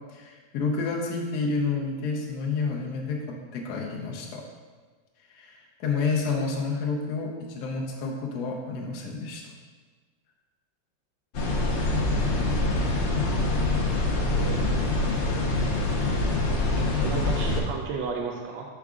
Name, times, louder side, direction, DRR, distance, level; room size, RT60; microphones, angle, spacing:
voice 1, 0.1-4.4 5.3-9.5, left 4 dB, 70° left, 0 dB, 1.2 m, -30 dB
sound 1, 11.3-17.6, left 2 dB, 55° left, 0.8 m, -25 dB
voice 2, 16.7-18.7, right 4 dB, 85° right, 1 dB, 1.2 m, -33 dB
6.0 x 4.7 x 3.6 m, 1.4 s
omnidirectional pair, 1.8 m